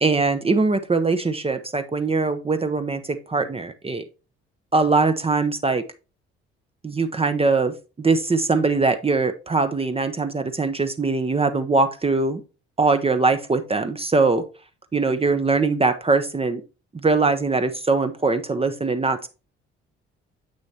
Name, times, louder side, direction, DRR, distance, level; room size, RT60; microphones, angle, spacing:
voice 1, 0.0-4.0 4.7-5.8 6.8-12.4 12.8-14.4 14.9-16.6 16.9-19.3, right 3 dB, 20° right, 9 dB, 0.7 m, -22 dB
8.3 x 6.3 x 2.8 m, 0.32 s
figure-of-eight pair, 45°, 32 cm